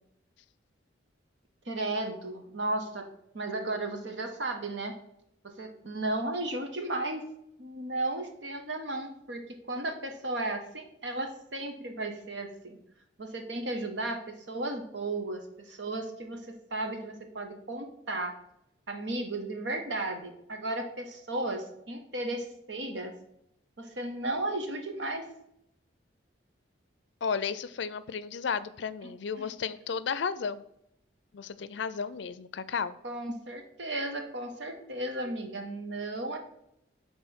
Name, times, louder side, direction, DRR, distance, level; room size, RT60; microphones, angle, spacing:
voice 1, 1.7-3.1 3.3-4.9 5.4-7.3 7.6-12.8 13.2-18.3 18.9-23.1 23.8-25.3 29.0-29.5 33.0-36.4, right 2 dB, 70° right, 4 dB, 1.1 m, -34 dB
voice 2, 27.2-30.6 31.3-33.0, left 6 dB, 70° left, 15 dB, 0.4 m, -33 dB
5.6 x 4.2 x 6.0 m, 0.79 s
head